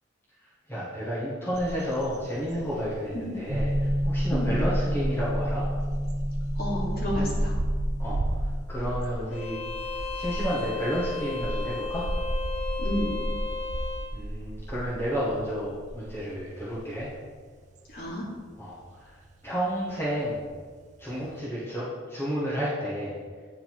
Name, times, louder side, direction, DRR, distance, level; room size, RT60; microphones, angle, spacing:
voice 1, 0.7-5.7 8.0-8.2 8.7-9.6 9.9-12.1 14.1-17.1 18.6-19.2 19.4-20.4 21.0-23.2, equal, 15° left, -8 dB, 1.4 m, -31 dB
sound 1, 1.5-21.3, right 1 dB, 40° right, 0.5 m, -34 dB
sound 2, 3.5-8.7, equal, 60° right, 1.0 m, -28 dB
voice 2, 6.5-7.6 12.8-13.2 17.9-18.3, equal, 50° left, -6 dB, 2.3 m, -31 dB
Bowed string instrument, 9.3-14.1, left 4 dB, 35° left, 0.5 m, -35 dB
9.2 x 3.9 x 4.6 m, 1.5 s
head